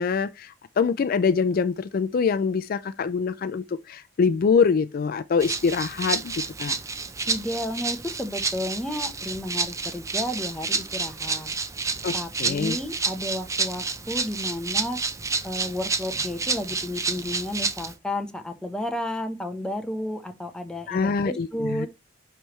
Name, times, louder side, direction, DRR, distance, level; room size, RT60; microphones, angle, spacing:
voice 1, 0.0-6.3 6.6-6.8 12.0-12.1 12.4-12.8 20.9-21.9, left 5 dB, 50° left, 0.4 m, -24 dB
Rattle (instrument), 5.4-17.9, right 4 dB, 15° right, 0.5 m, -29 dB
voice 2, 7.3-11.5 12.1-15.0 15.4-21.9, left 1 dB, 5° left, 0.9 m, -32 dB
9.9 x 3.3 x 3.1 m
head